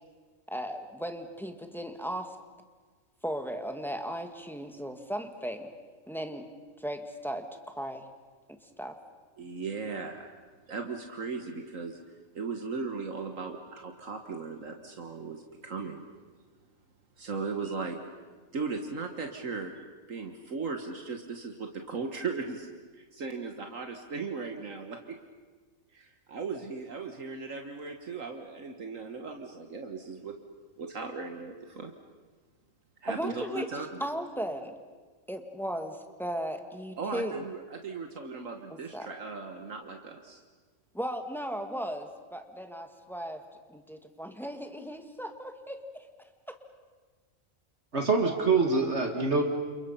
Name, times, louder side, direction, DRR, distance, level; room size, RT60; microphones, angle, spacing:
voice 1, 0.5-2.4 3.2-5.7 6.1-6.5 6.8-7.4 7.7-8.1 8.5-8.9 33.1-33.7 34.0-34.8 35.3-37.4 38.9-39.1 40.9-43.4 43.7-46.1 46.5-46.6, equal, ahead, 5 dB, 1.9 m, -36 dB
voice 2, 9.4-10.3 10.7-12.0 12.3-16.1 17.2-18.0 18.5-19.7 20.1-22.7 22.9-25.2 25.9-30.4 30.8-31.9 33.0-34.0 37.0-40.4, right 4 dB, 70° right, 4 dB, 1.9 m, -37 dB
voice 3, 47.9-49.4, right 4 dB, 55° right, 3 dB, 2.1 m, -25 dB
29.5 x 28.5 x 5.7 m, 1.4 s
omnidirectional pair, 1.4 m